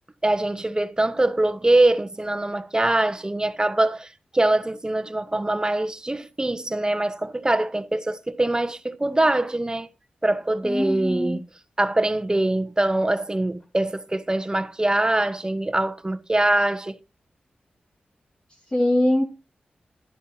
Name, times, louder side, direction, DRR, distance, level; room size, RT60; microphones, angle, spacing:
voice 1, 0.2-4.1 4.3-9.9 10.2-11.4 11.8-16.9, right 1 dB, 20° right, 1.2 m, -23 dB
voice 2, 10.6-11.4 18.7-19.2, left 1 dB, 30° left, 2.0 m, -22 dB
12.0 x 10.5 x 2.9 m
cardioid pair, 40°, 3 cm